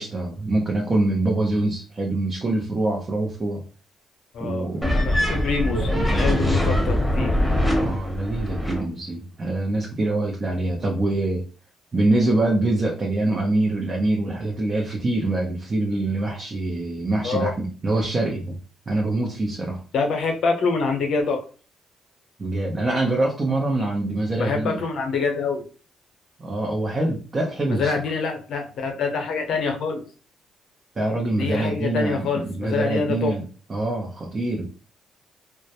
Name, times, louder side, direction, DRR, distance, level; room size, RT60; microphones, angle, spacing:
voice 1, 0.0-3.6 4.4-5.3 7.8-11.4 11.9-18.6 18.9-19.8 22.4-24.8 26.4-27.9 31.0-33.4 33.7-34.6, right 2 dB, 35° right, -1 dB, 0.6 m, -24 dB
voice 2, 4.3-7.4 17.2-17.5 19.9-21.4 24.4-25.7 27.7-30.0 31.4-33.3, left 4 dB, 70° left, 4 dB, 0.7 m, -25 dB
sound 1, 4.8-8.8, left 1 dB, 5° left, 0.9 m, -22 dB
2.2 x 2.0 x 2.8 m, 0.37 s
cardioid pair, 90°, 0 cm